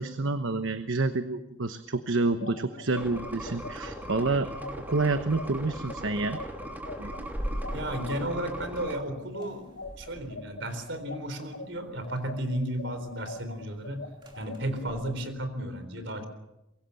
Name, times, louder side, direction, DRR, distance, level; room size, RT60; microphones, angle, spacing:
voice 1, 0.0-4.5 4.8-6.4 7.0-7.3, right 3 dB, 85° right, 9 dB, 1.1 m, -28 dB
sound 1, 2.3-11.7 12.0-15.1, left 3 dB, 90° left, 3.3 m, -42 dB
sound 2, 3.0-9.0, right 1 dB, 10° right, 2.8 m, -39 dB
sound 3, 7.0-15.0, equal, 25° right, 3.1 m, -42 dB
voice 2, 7.7-9.7 10.0-14.1 14.4-16.2, right 1 dB, 70° right, 9 dB, 4.0 m, -33 dB
24.5 x 22.5 x 7.1 m, 0.95 s
head